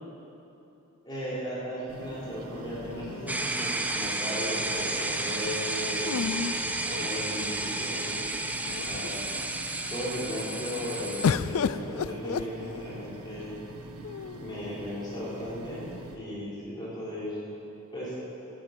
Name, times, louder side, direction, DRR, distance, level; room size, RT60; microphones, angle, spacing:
voice 1, 1.0-6.4 6.9-8.4 8.9-9.4 9.9-13.5 14.4-17.4 17.9-18.1, equal, 20° left, -9 dB, 4.1 m, -36 dB
sound 1, 1.9-16.2, right 2 dB, 80° right, 1.4 m, -45 dB
sound 2, 2.9-4.0 6.0-7.5 8.3-8.4 8.7-9.3 11.2-13.1 14.0-14.7, left 6 dB, 70° left, 0.4 m, -32 dB
sound 3, 3.3-11.3, right 2 dB, 5° right, 0.6 m, -32 dB
13.0 x 9.6 x 8.3 m, 2.9 s
head